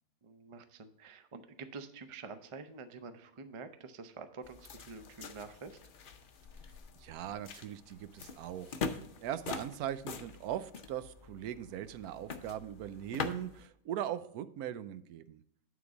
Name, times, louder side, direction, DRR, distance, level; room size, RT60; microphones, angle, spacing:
voice 1, 0.2-5.8, right 4 dB, 50° right, 9 dB, 0.3 m, -48 dB
sound 1, 4.4-13.6, left 5 dB, 55° left, 0.6 m, -44 dB
voice 2, 7.0-8.8 9.2-15.4, right 11 dB, 90° right, 13 dB, 1.1 m, -40 dB
9.4 x 3.9 x 5.9 m, 0.75 s
omnidirectional pair, 1.5 m